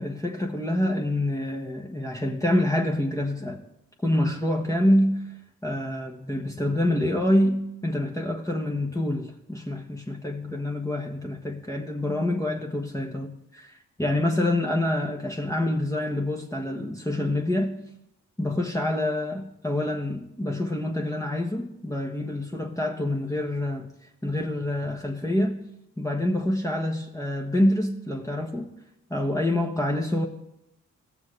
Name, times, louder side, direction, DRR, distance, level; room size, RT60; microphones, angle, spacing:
voice 1, 0.0-3.6 4.0-17.8 18.4-23.9 24.2-25.6 26.0-28.7 29.1-30.3, left 1 dB, 10° left, 1.3 m, -26 dB
16.0 x 7.2 x 3.3 m
supercardioid pair, 45°, 35 cm